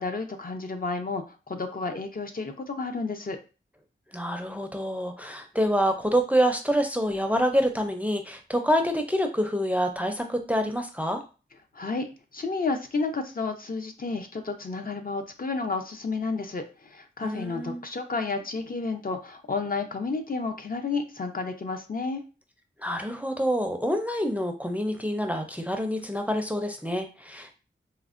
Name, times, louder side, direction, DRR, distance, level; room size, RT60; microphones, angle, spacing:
voice 1, 0.0-3.4 11.7-12.1 12.3-22.2, left 3 dB, 45° left, 6 dB, 0.5 m, -31 dB
voice 2, 4.1-11.2 17.2-17.8 22.8-27.5, equal, 5° right, 5 dB, 0.4 m, -27 dB
4.3 x 2.0 x 2.4 m, 0.33 s
wide cardioid pair, 75°, 20 cm